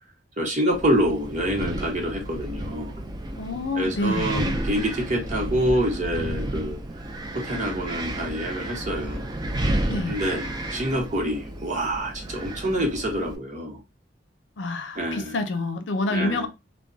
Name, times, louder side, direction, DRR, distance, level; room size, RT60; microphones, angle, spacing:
voice 1, 0.4-2.9 3.8-6.8 7.3-9.3 10.1-13.8 15.0-15.3 16.1-16.5, equal, 40° right, 0.9 m, -26 dB
Wind, 0.7-13.4, right 1 dB, 25° right, 0.4 m, -32 dB
voice 2, 3.4-4.4 9.9-10.2 14.6-16.5, left 2 dB, 90° left, 0.6 m, -27 dB
2.2 x 2.2 x 3.8 m
head